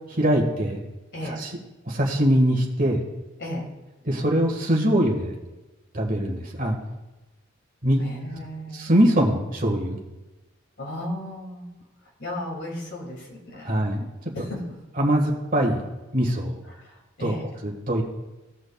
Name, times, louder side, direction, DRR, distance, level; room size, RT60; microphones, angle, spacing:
voice 1, 0.1-0.8 1.2-1.5 1.9-3.0 4.0-5.3 5.9-6.8 7.8-8.0 8.7-10.0 13.6-14.1 15.0-15.8 16.1-16.6 17.2-17.4 17.6-18.0, equal, 40° right, 0 dB, 1.7 m, -22 dB
voice 2, 1.1-1.4 3.4-3.7 8.0-9.1 10.8-11.7 12.2-13.7 14.3-14.6 16.7-17.5, left 1 dB, 55° left, -1 dB, 2.6 m, -35 dB
16.5 x 6.3 x 2.4 m, 1.1 s
head